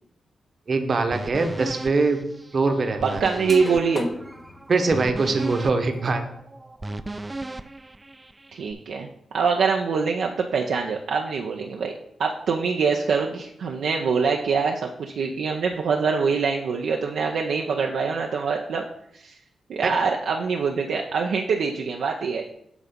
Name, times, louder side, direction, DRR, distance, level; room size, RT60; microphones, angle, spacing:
voice 1, 0.7-2.2 2.5-3.2 4.7-6.2, right 3 dB, 55° right, 6 dB, 1.1 m, -22 dB
sound 1, 1.1-8.7, right 2 dB, 25° right, 0.5 m, -36 dB
voice 2, 3.0-4.1 8.5-9.1 9.3-11.9 12.2-18.8 19.1-19.3 19.7-22.4, right 5 dB, 75° right, 0 dB, 0.6 m, -24 dB
sound 2, 3.1-3.2 3.5-6.3, left 2 dB, 35° left, 0.9 m, -37 dB
8.1 x 3.6 x 5.2 m, 0.72 s
supercardioid pair, 40°, 0 cm